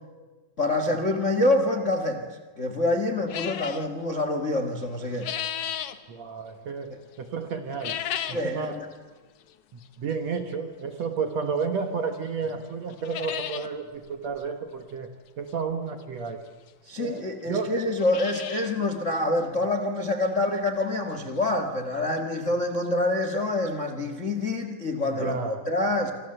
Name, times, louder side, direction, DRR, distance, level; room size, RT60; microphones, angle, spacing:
voice 1, 0.6-2.3 2.6-5.3 8.3-8.9 16.9-26.1, left 2 dB, 35° left, 8 dB, 1.2 m, -26 dB
sound 1, 3.3-3.9 4.8-6.0 7.7-8.5 8.9-9.0 9.8-9.9 11.6-11.7 12.1-12.2 12.5-12.6 12.9-13.7 14.0-14.1 14.4-14.5 16.0-16.1 16.9-17.0 17.2-17.3 17.8-18.8 19.1-19.2 19.7-19.8 20.2-20.3 22.1-22.2 22.3-22.4 22.9-23.0, left 10 dB, 65° left, 1.5 m, -34 dB
voice 2, 6.1-8.0 8.3-8.8 9.7-16.4 17.0-17.7 25.2-25.7, right 5 dB, 60° right, 6 dB, 2.2 m, -32 dB
27.0 x 25.5 x 7.9 m, 1.3 s
omnidirectional pair, 4.0 m